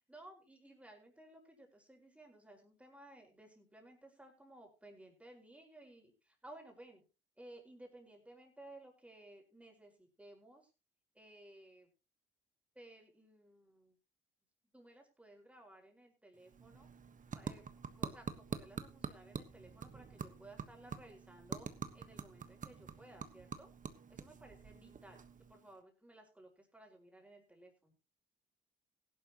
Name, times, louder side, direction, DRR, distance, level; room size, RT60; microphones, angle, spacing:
voice 1, 0.1-7.0 7.4-10.7 11.2-11.9 12.8-14.0 14.7-16.9 17.3-17.7 18.0-23.7 24.1-28.0, right 1 dB, 5° right, 1 dB, 5.1 m, -58 dB
sound 1, 16.3-25.8, right 6 dB, 40° right, 1.3 m, -47 dB
16.5 x 11.5 x 3.0 m, 0.30 s
cardioid pair, 90°, 20 cm